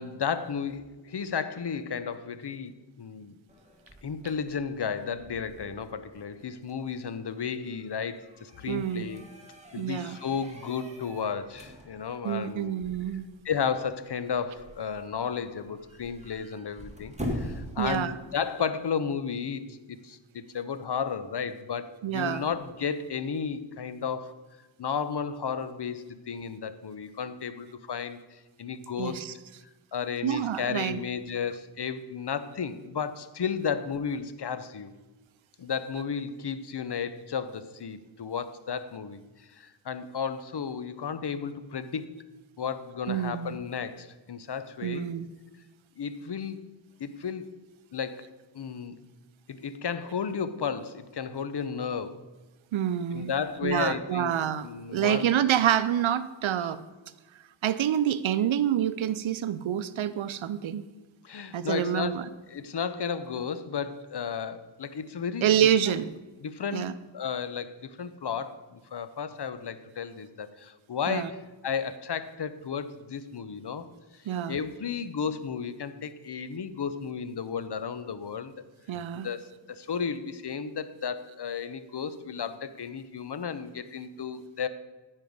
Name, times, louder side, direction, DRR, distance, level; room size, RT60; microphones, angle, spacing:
voice 1, 0.0-2.7 3.0-3.4 4.0-9.2 9.7-12.8 13.4-24.3 24.8-29.2 29.9-34.9 35.6-42.2 42.6-45.1 46.0-46.7 47.0-47.5 47.9-48.3 48.5-49.0 49.5-52.2 53.1-54.4 54.6-55.4 61.2-62.2 62.5-65.5 65.9-66.0 66.4-73.9 74.1-78.5 79.1-84.7, left 6 dB, 60° left, 12 dB, 0.9 m, -33 dB
sound 1, 3.5-18.5, equal, 15° right, 2.0 m, -44 dB
voice 2, 8.7-9.0 9.7-10.2 12.2-13.3 17.8-18.2 22.0-22.5 29.0-29.3 30.2-31.0 43.1-43.6 44.8-45.3 52.7-53.3 53.6-56.8 57.6-60.8 61.5-62.2 65.4-66.1 66.7-66.9 71.1-71.3 74.3-74.6 78.9-79.3, right 10 dB, 90° right, 14 dB, 0.6 m, -27 dB
14.5 x 5.5 x 5.4 m, 1.2 s
wide cardioid pair, 60°, 46 cm